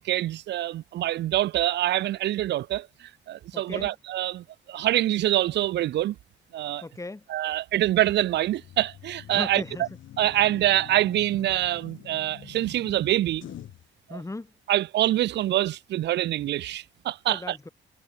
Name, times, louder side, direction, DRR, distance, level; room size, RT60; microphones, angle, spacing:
voice 1, 0.0-6.2 6.5-6.8 7.3-9.9 10.2-13.5 14.1-14.2 14.7-17.6, right 14 dB, 60° right, 0.4 m, -25 dB
voice 2, 3.5-3.9 6.8-7.2 9.3-9.9 14.1-14.5 17.3-17.7, left 2 dB, 15° left, 2.8 m, -37 dB
sound 1, 8.0-13.9, left 12 dB, 75° left, 5.9 m, -46 dB
cardioid pair, 90°, 20 cm